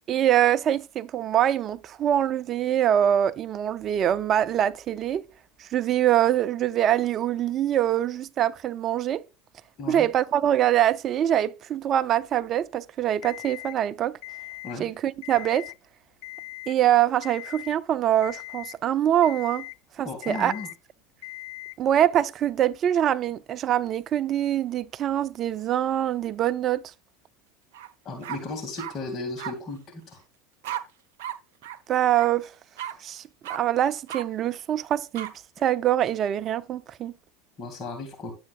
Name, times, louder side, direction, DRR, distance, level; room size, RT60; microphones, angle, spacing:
voice 1, 0.1-5.2 5.6-9.2 9.9-14.2 14.8-15.7 16.7-19.7 20.0-20.5 21.8-26.8 31.9-32.5 33.0-33.2 33.5-35.3 35.6-37.1, right 11 dB, 40° right, 0.5 m, -24 dB
Alarm, 13.2-13.8 14.2-14.8 15.2-15.8 16.2-16.8 17.2-17.8 18.2-18.8 19.2-19.8 20.2-20.8 21.2-21.8, left 24 dB, 60° left, 0.5 m, -40 dB
voice 2, 20.0-20.7 28.0-30.2 37.6-38.3, left 3 dB, 35° left, 2.5 m, -35 dB
sound 1, 27.7-27.9 28.2-28.9 29.4-29.5 30.6-30.8 31.2-31.4 31.6-31.8 32.1-32.3 32.8-32.9 33.4-33.6 34.1-34.2 35.1-35.3, right 11 dB, 60° right, 1.0 m, -34 dB
11.0 x 7.8 x 2.5 m
figure-of-eight pair, 75°, 0 cm